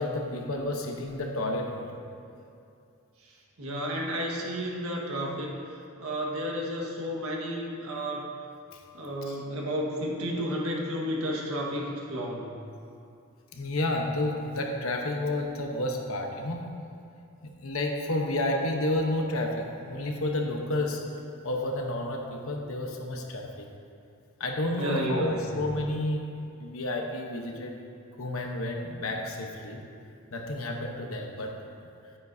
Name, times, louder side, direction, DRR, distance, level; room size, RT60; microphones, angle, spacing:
voice 1, 0.0-1.9 9.3-9.4 13.5-16.8 17.4-21.1 21.4-23.7 24.4-26.3 26.6-27.7 28.2-29.8 30.3-31.6, left 1 dB, 75° left, 2 dB, 1.0 m, -30 dB
voice 2, 3.6-5.5 6.0-8.3 8.9-12.5 24.8-25.5, equal, 90° right, -2 dB, 1.5 m, -32 dB
11.0 x 9.3 x 2.7 m, 2.6 s
head